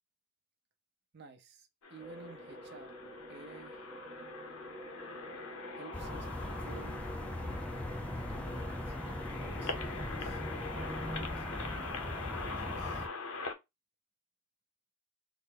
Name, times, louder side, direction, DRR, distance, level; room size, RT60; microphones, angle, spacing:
voice 1, 1.1-2.9 3.3-3.9 5.7-7.1 7.4-10.4 10.7-12.1 12.4-13.1, right 3 dB, 50° right, 0.8 m, -53 dB
sound 1, 1.8-13.5, left 4 dB, 75° left, 0.7 m, -43 dB
sound 2, 2.0-11.3, equal, 10° right, 0.8 m, -48 dB
sound 3, 5.9-13.1, left 1 dB, 5° left, 0.3 m, -40 dB
3.9 x 2.1 x 3.7 m
head